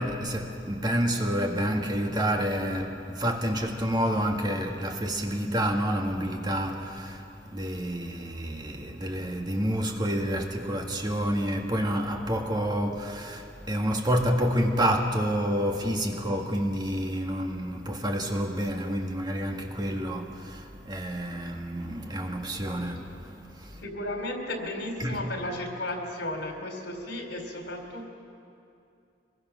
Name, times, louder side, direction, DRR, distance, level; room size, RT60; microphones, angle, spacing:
voice 1, 0.0-7.2 7.5-23.8 25.0-25.3, equal, 25° right, 1.8 m, -29 dB
voice 2, 23.8-28.1, left 1 dB, 80° left, 3.9 m, -34 dB
24.5 x 21.5 x 6.2 m
head